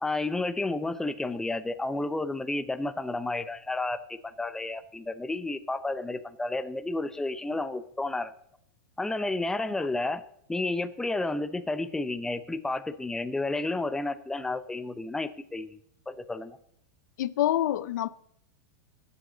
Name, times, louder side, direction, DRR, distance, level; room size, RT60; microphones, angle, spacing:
voice 1, 0.0-8.3 9.0-10.2 10.5-15.8 16.1-16.6, left 2 dB, 5° left, 0.6 m, -31 dB
voice 2, 17.2-18.1, left 12 dB, 75° left, 0.5 m, -26 dB
19.0 x 8.0 x 3.9 m
supercardioid pair, 140°, 10 cm